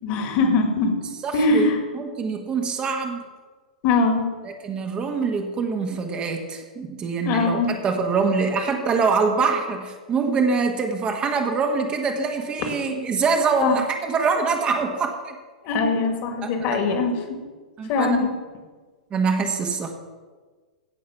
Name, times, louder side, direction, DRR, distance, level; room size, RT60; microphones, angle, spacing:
voice 1, 0.0-1.1 1.3-1.8 3.8-4.3 7.2-7.7 12.6-12.7 13.6-13.8 15.6-17.4 17.9-18.3, left 3 dB, 40° left, 4 dB, 2.1 m, -22 dB
voice 2, 1.2-1.7 1.9-3.2 4.5-15.3 16.4-16.8 17.8-18.3 19.1-19.9, right 4 dB, 25° right, 4 dB, 1.4 m, -24 dB
16.5 x 6.5 x 5.8 m, 1.4 s
figure-of-eight pair, 100°, 4 cm